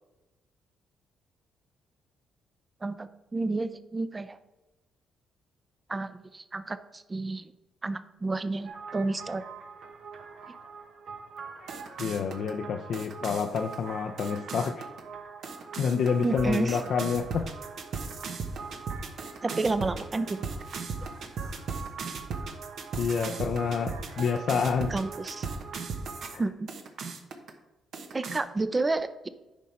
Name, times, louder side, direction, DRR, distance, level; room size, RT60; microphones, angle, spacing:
voice 1, 2.8-4.4 5.9-7.5 7.8-9.4 16.2-16.8 19.4-20.4 24.9-25.5 26.4-26.7 28.1-29.3, right 3 dB, 25° right, 12 dB, 0.6 m, -30 dB
sound 1, 8.6-26.4 26.7-27.5 27.9-28.4, right 5 dB, 65° right, 1.1 m, -38 dB
voice 2, 12.0-14.9 15.8-17.4 23.0-24.9 26.3-26.4, left 6 dB, 65° left, 4 dB, 0.5 m, -28 dB
9.5 x 5.4 x 4.3 m, 1.1 s
cardioid pair, 90°, 0 cm